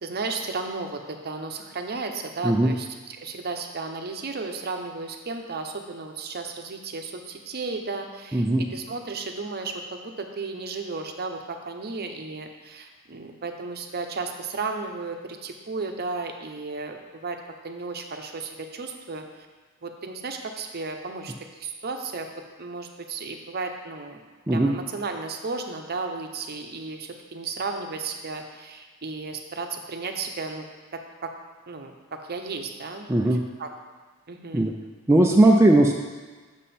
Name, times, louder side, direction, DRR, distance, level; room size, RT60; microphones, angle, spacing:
voice 1, 0.0-19.2 19.8-22.3 22.6-24.2 24.5-30.6 30.9-31.3 31.7-33.7 34.3-34.7, right 4 dB, 45° right, 4 dB, 0.7 m, -34 dB
voice 2, 33.1-33.4 34.5-34.7 35.1-35.9, right 1 dB, 10° right, 0 dB, 0.4 m, -18 dB
7.5 x 6.2 x 4.2 m, 1.4 s
head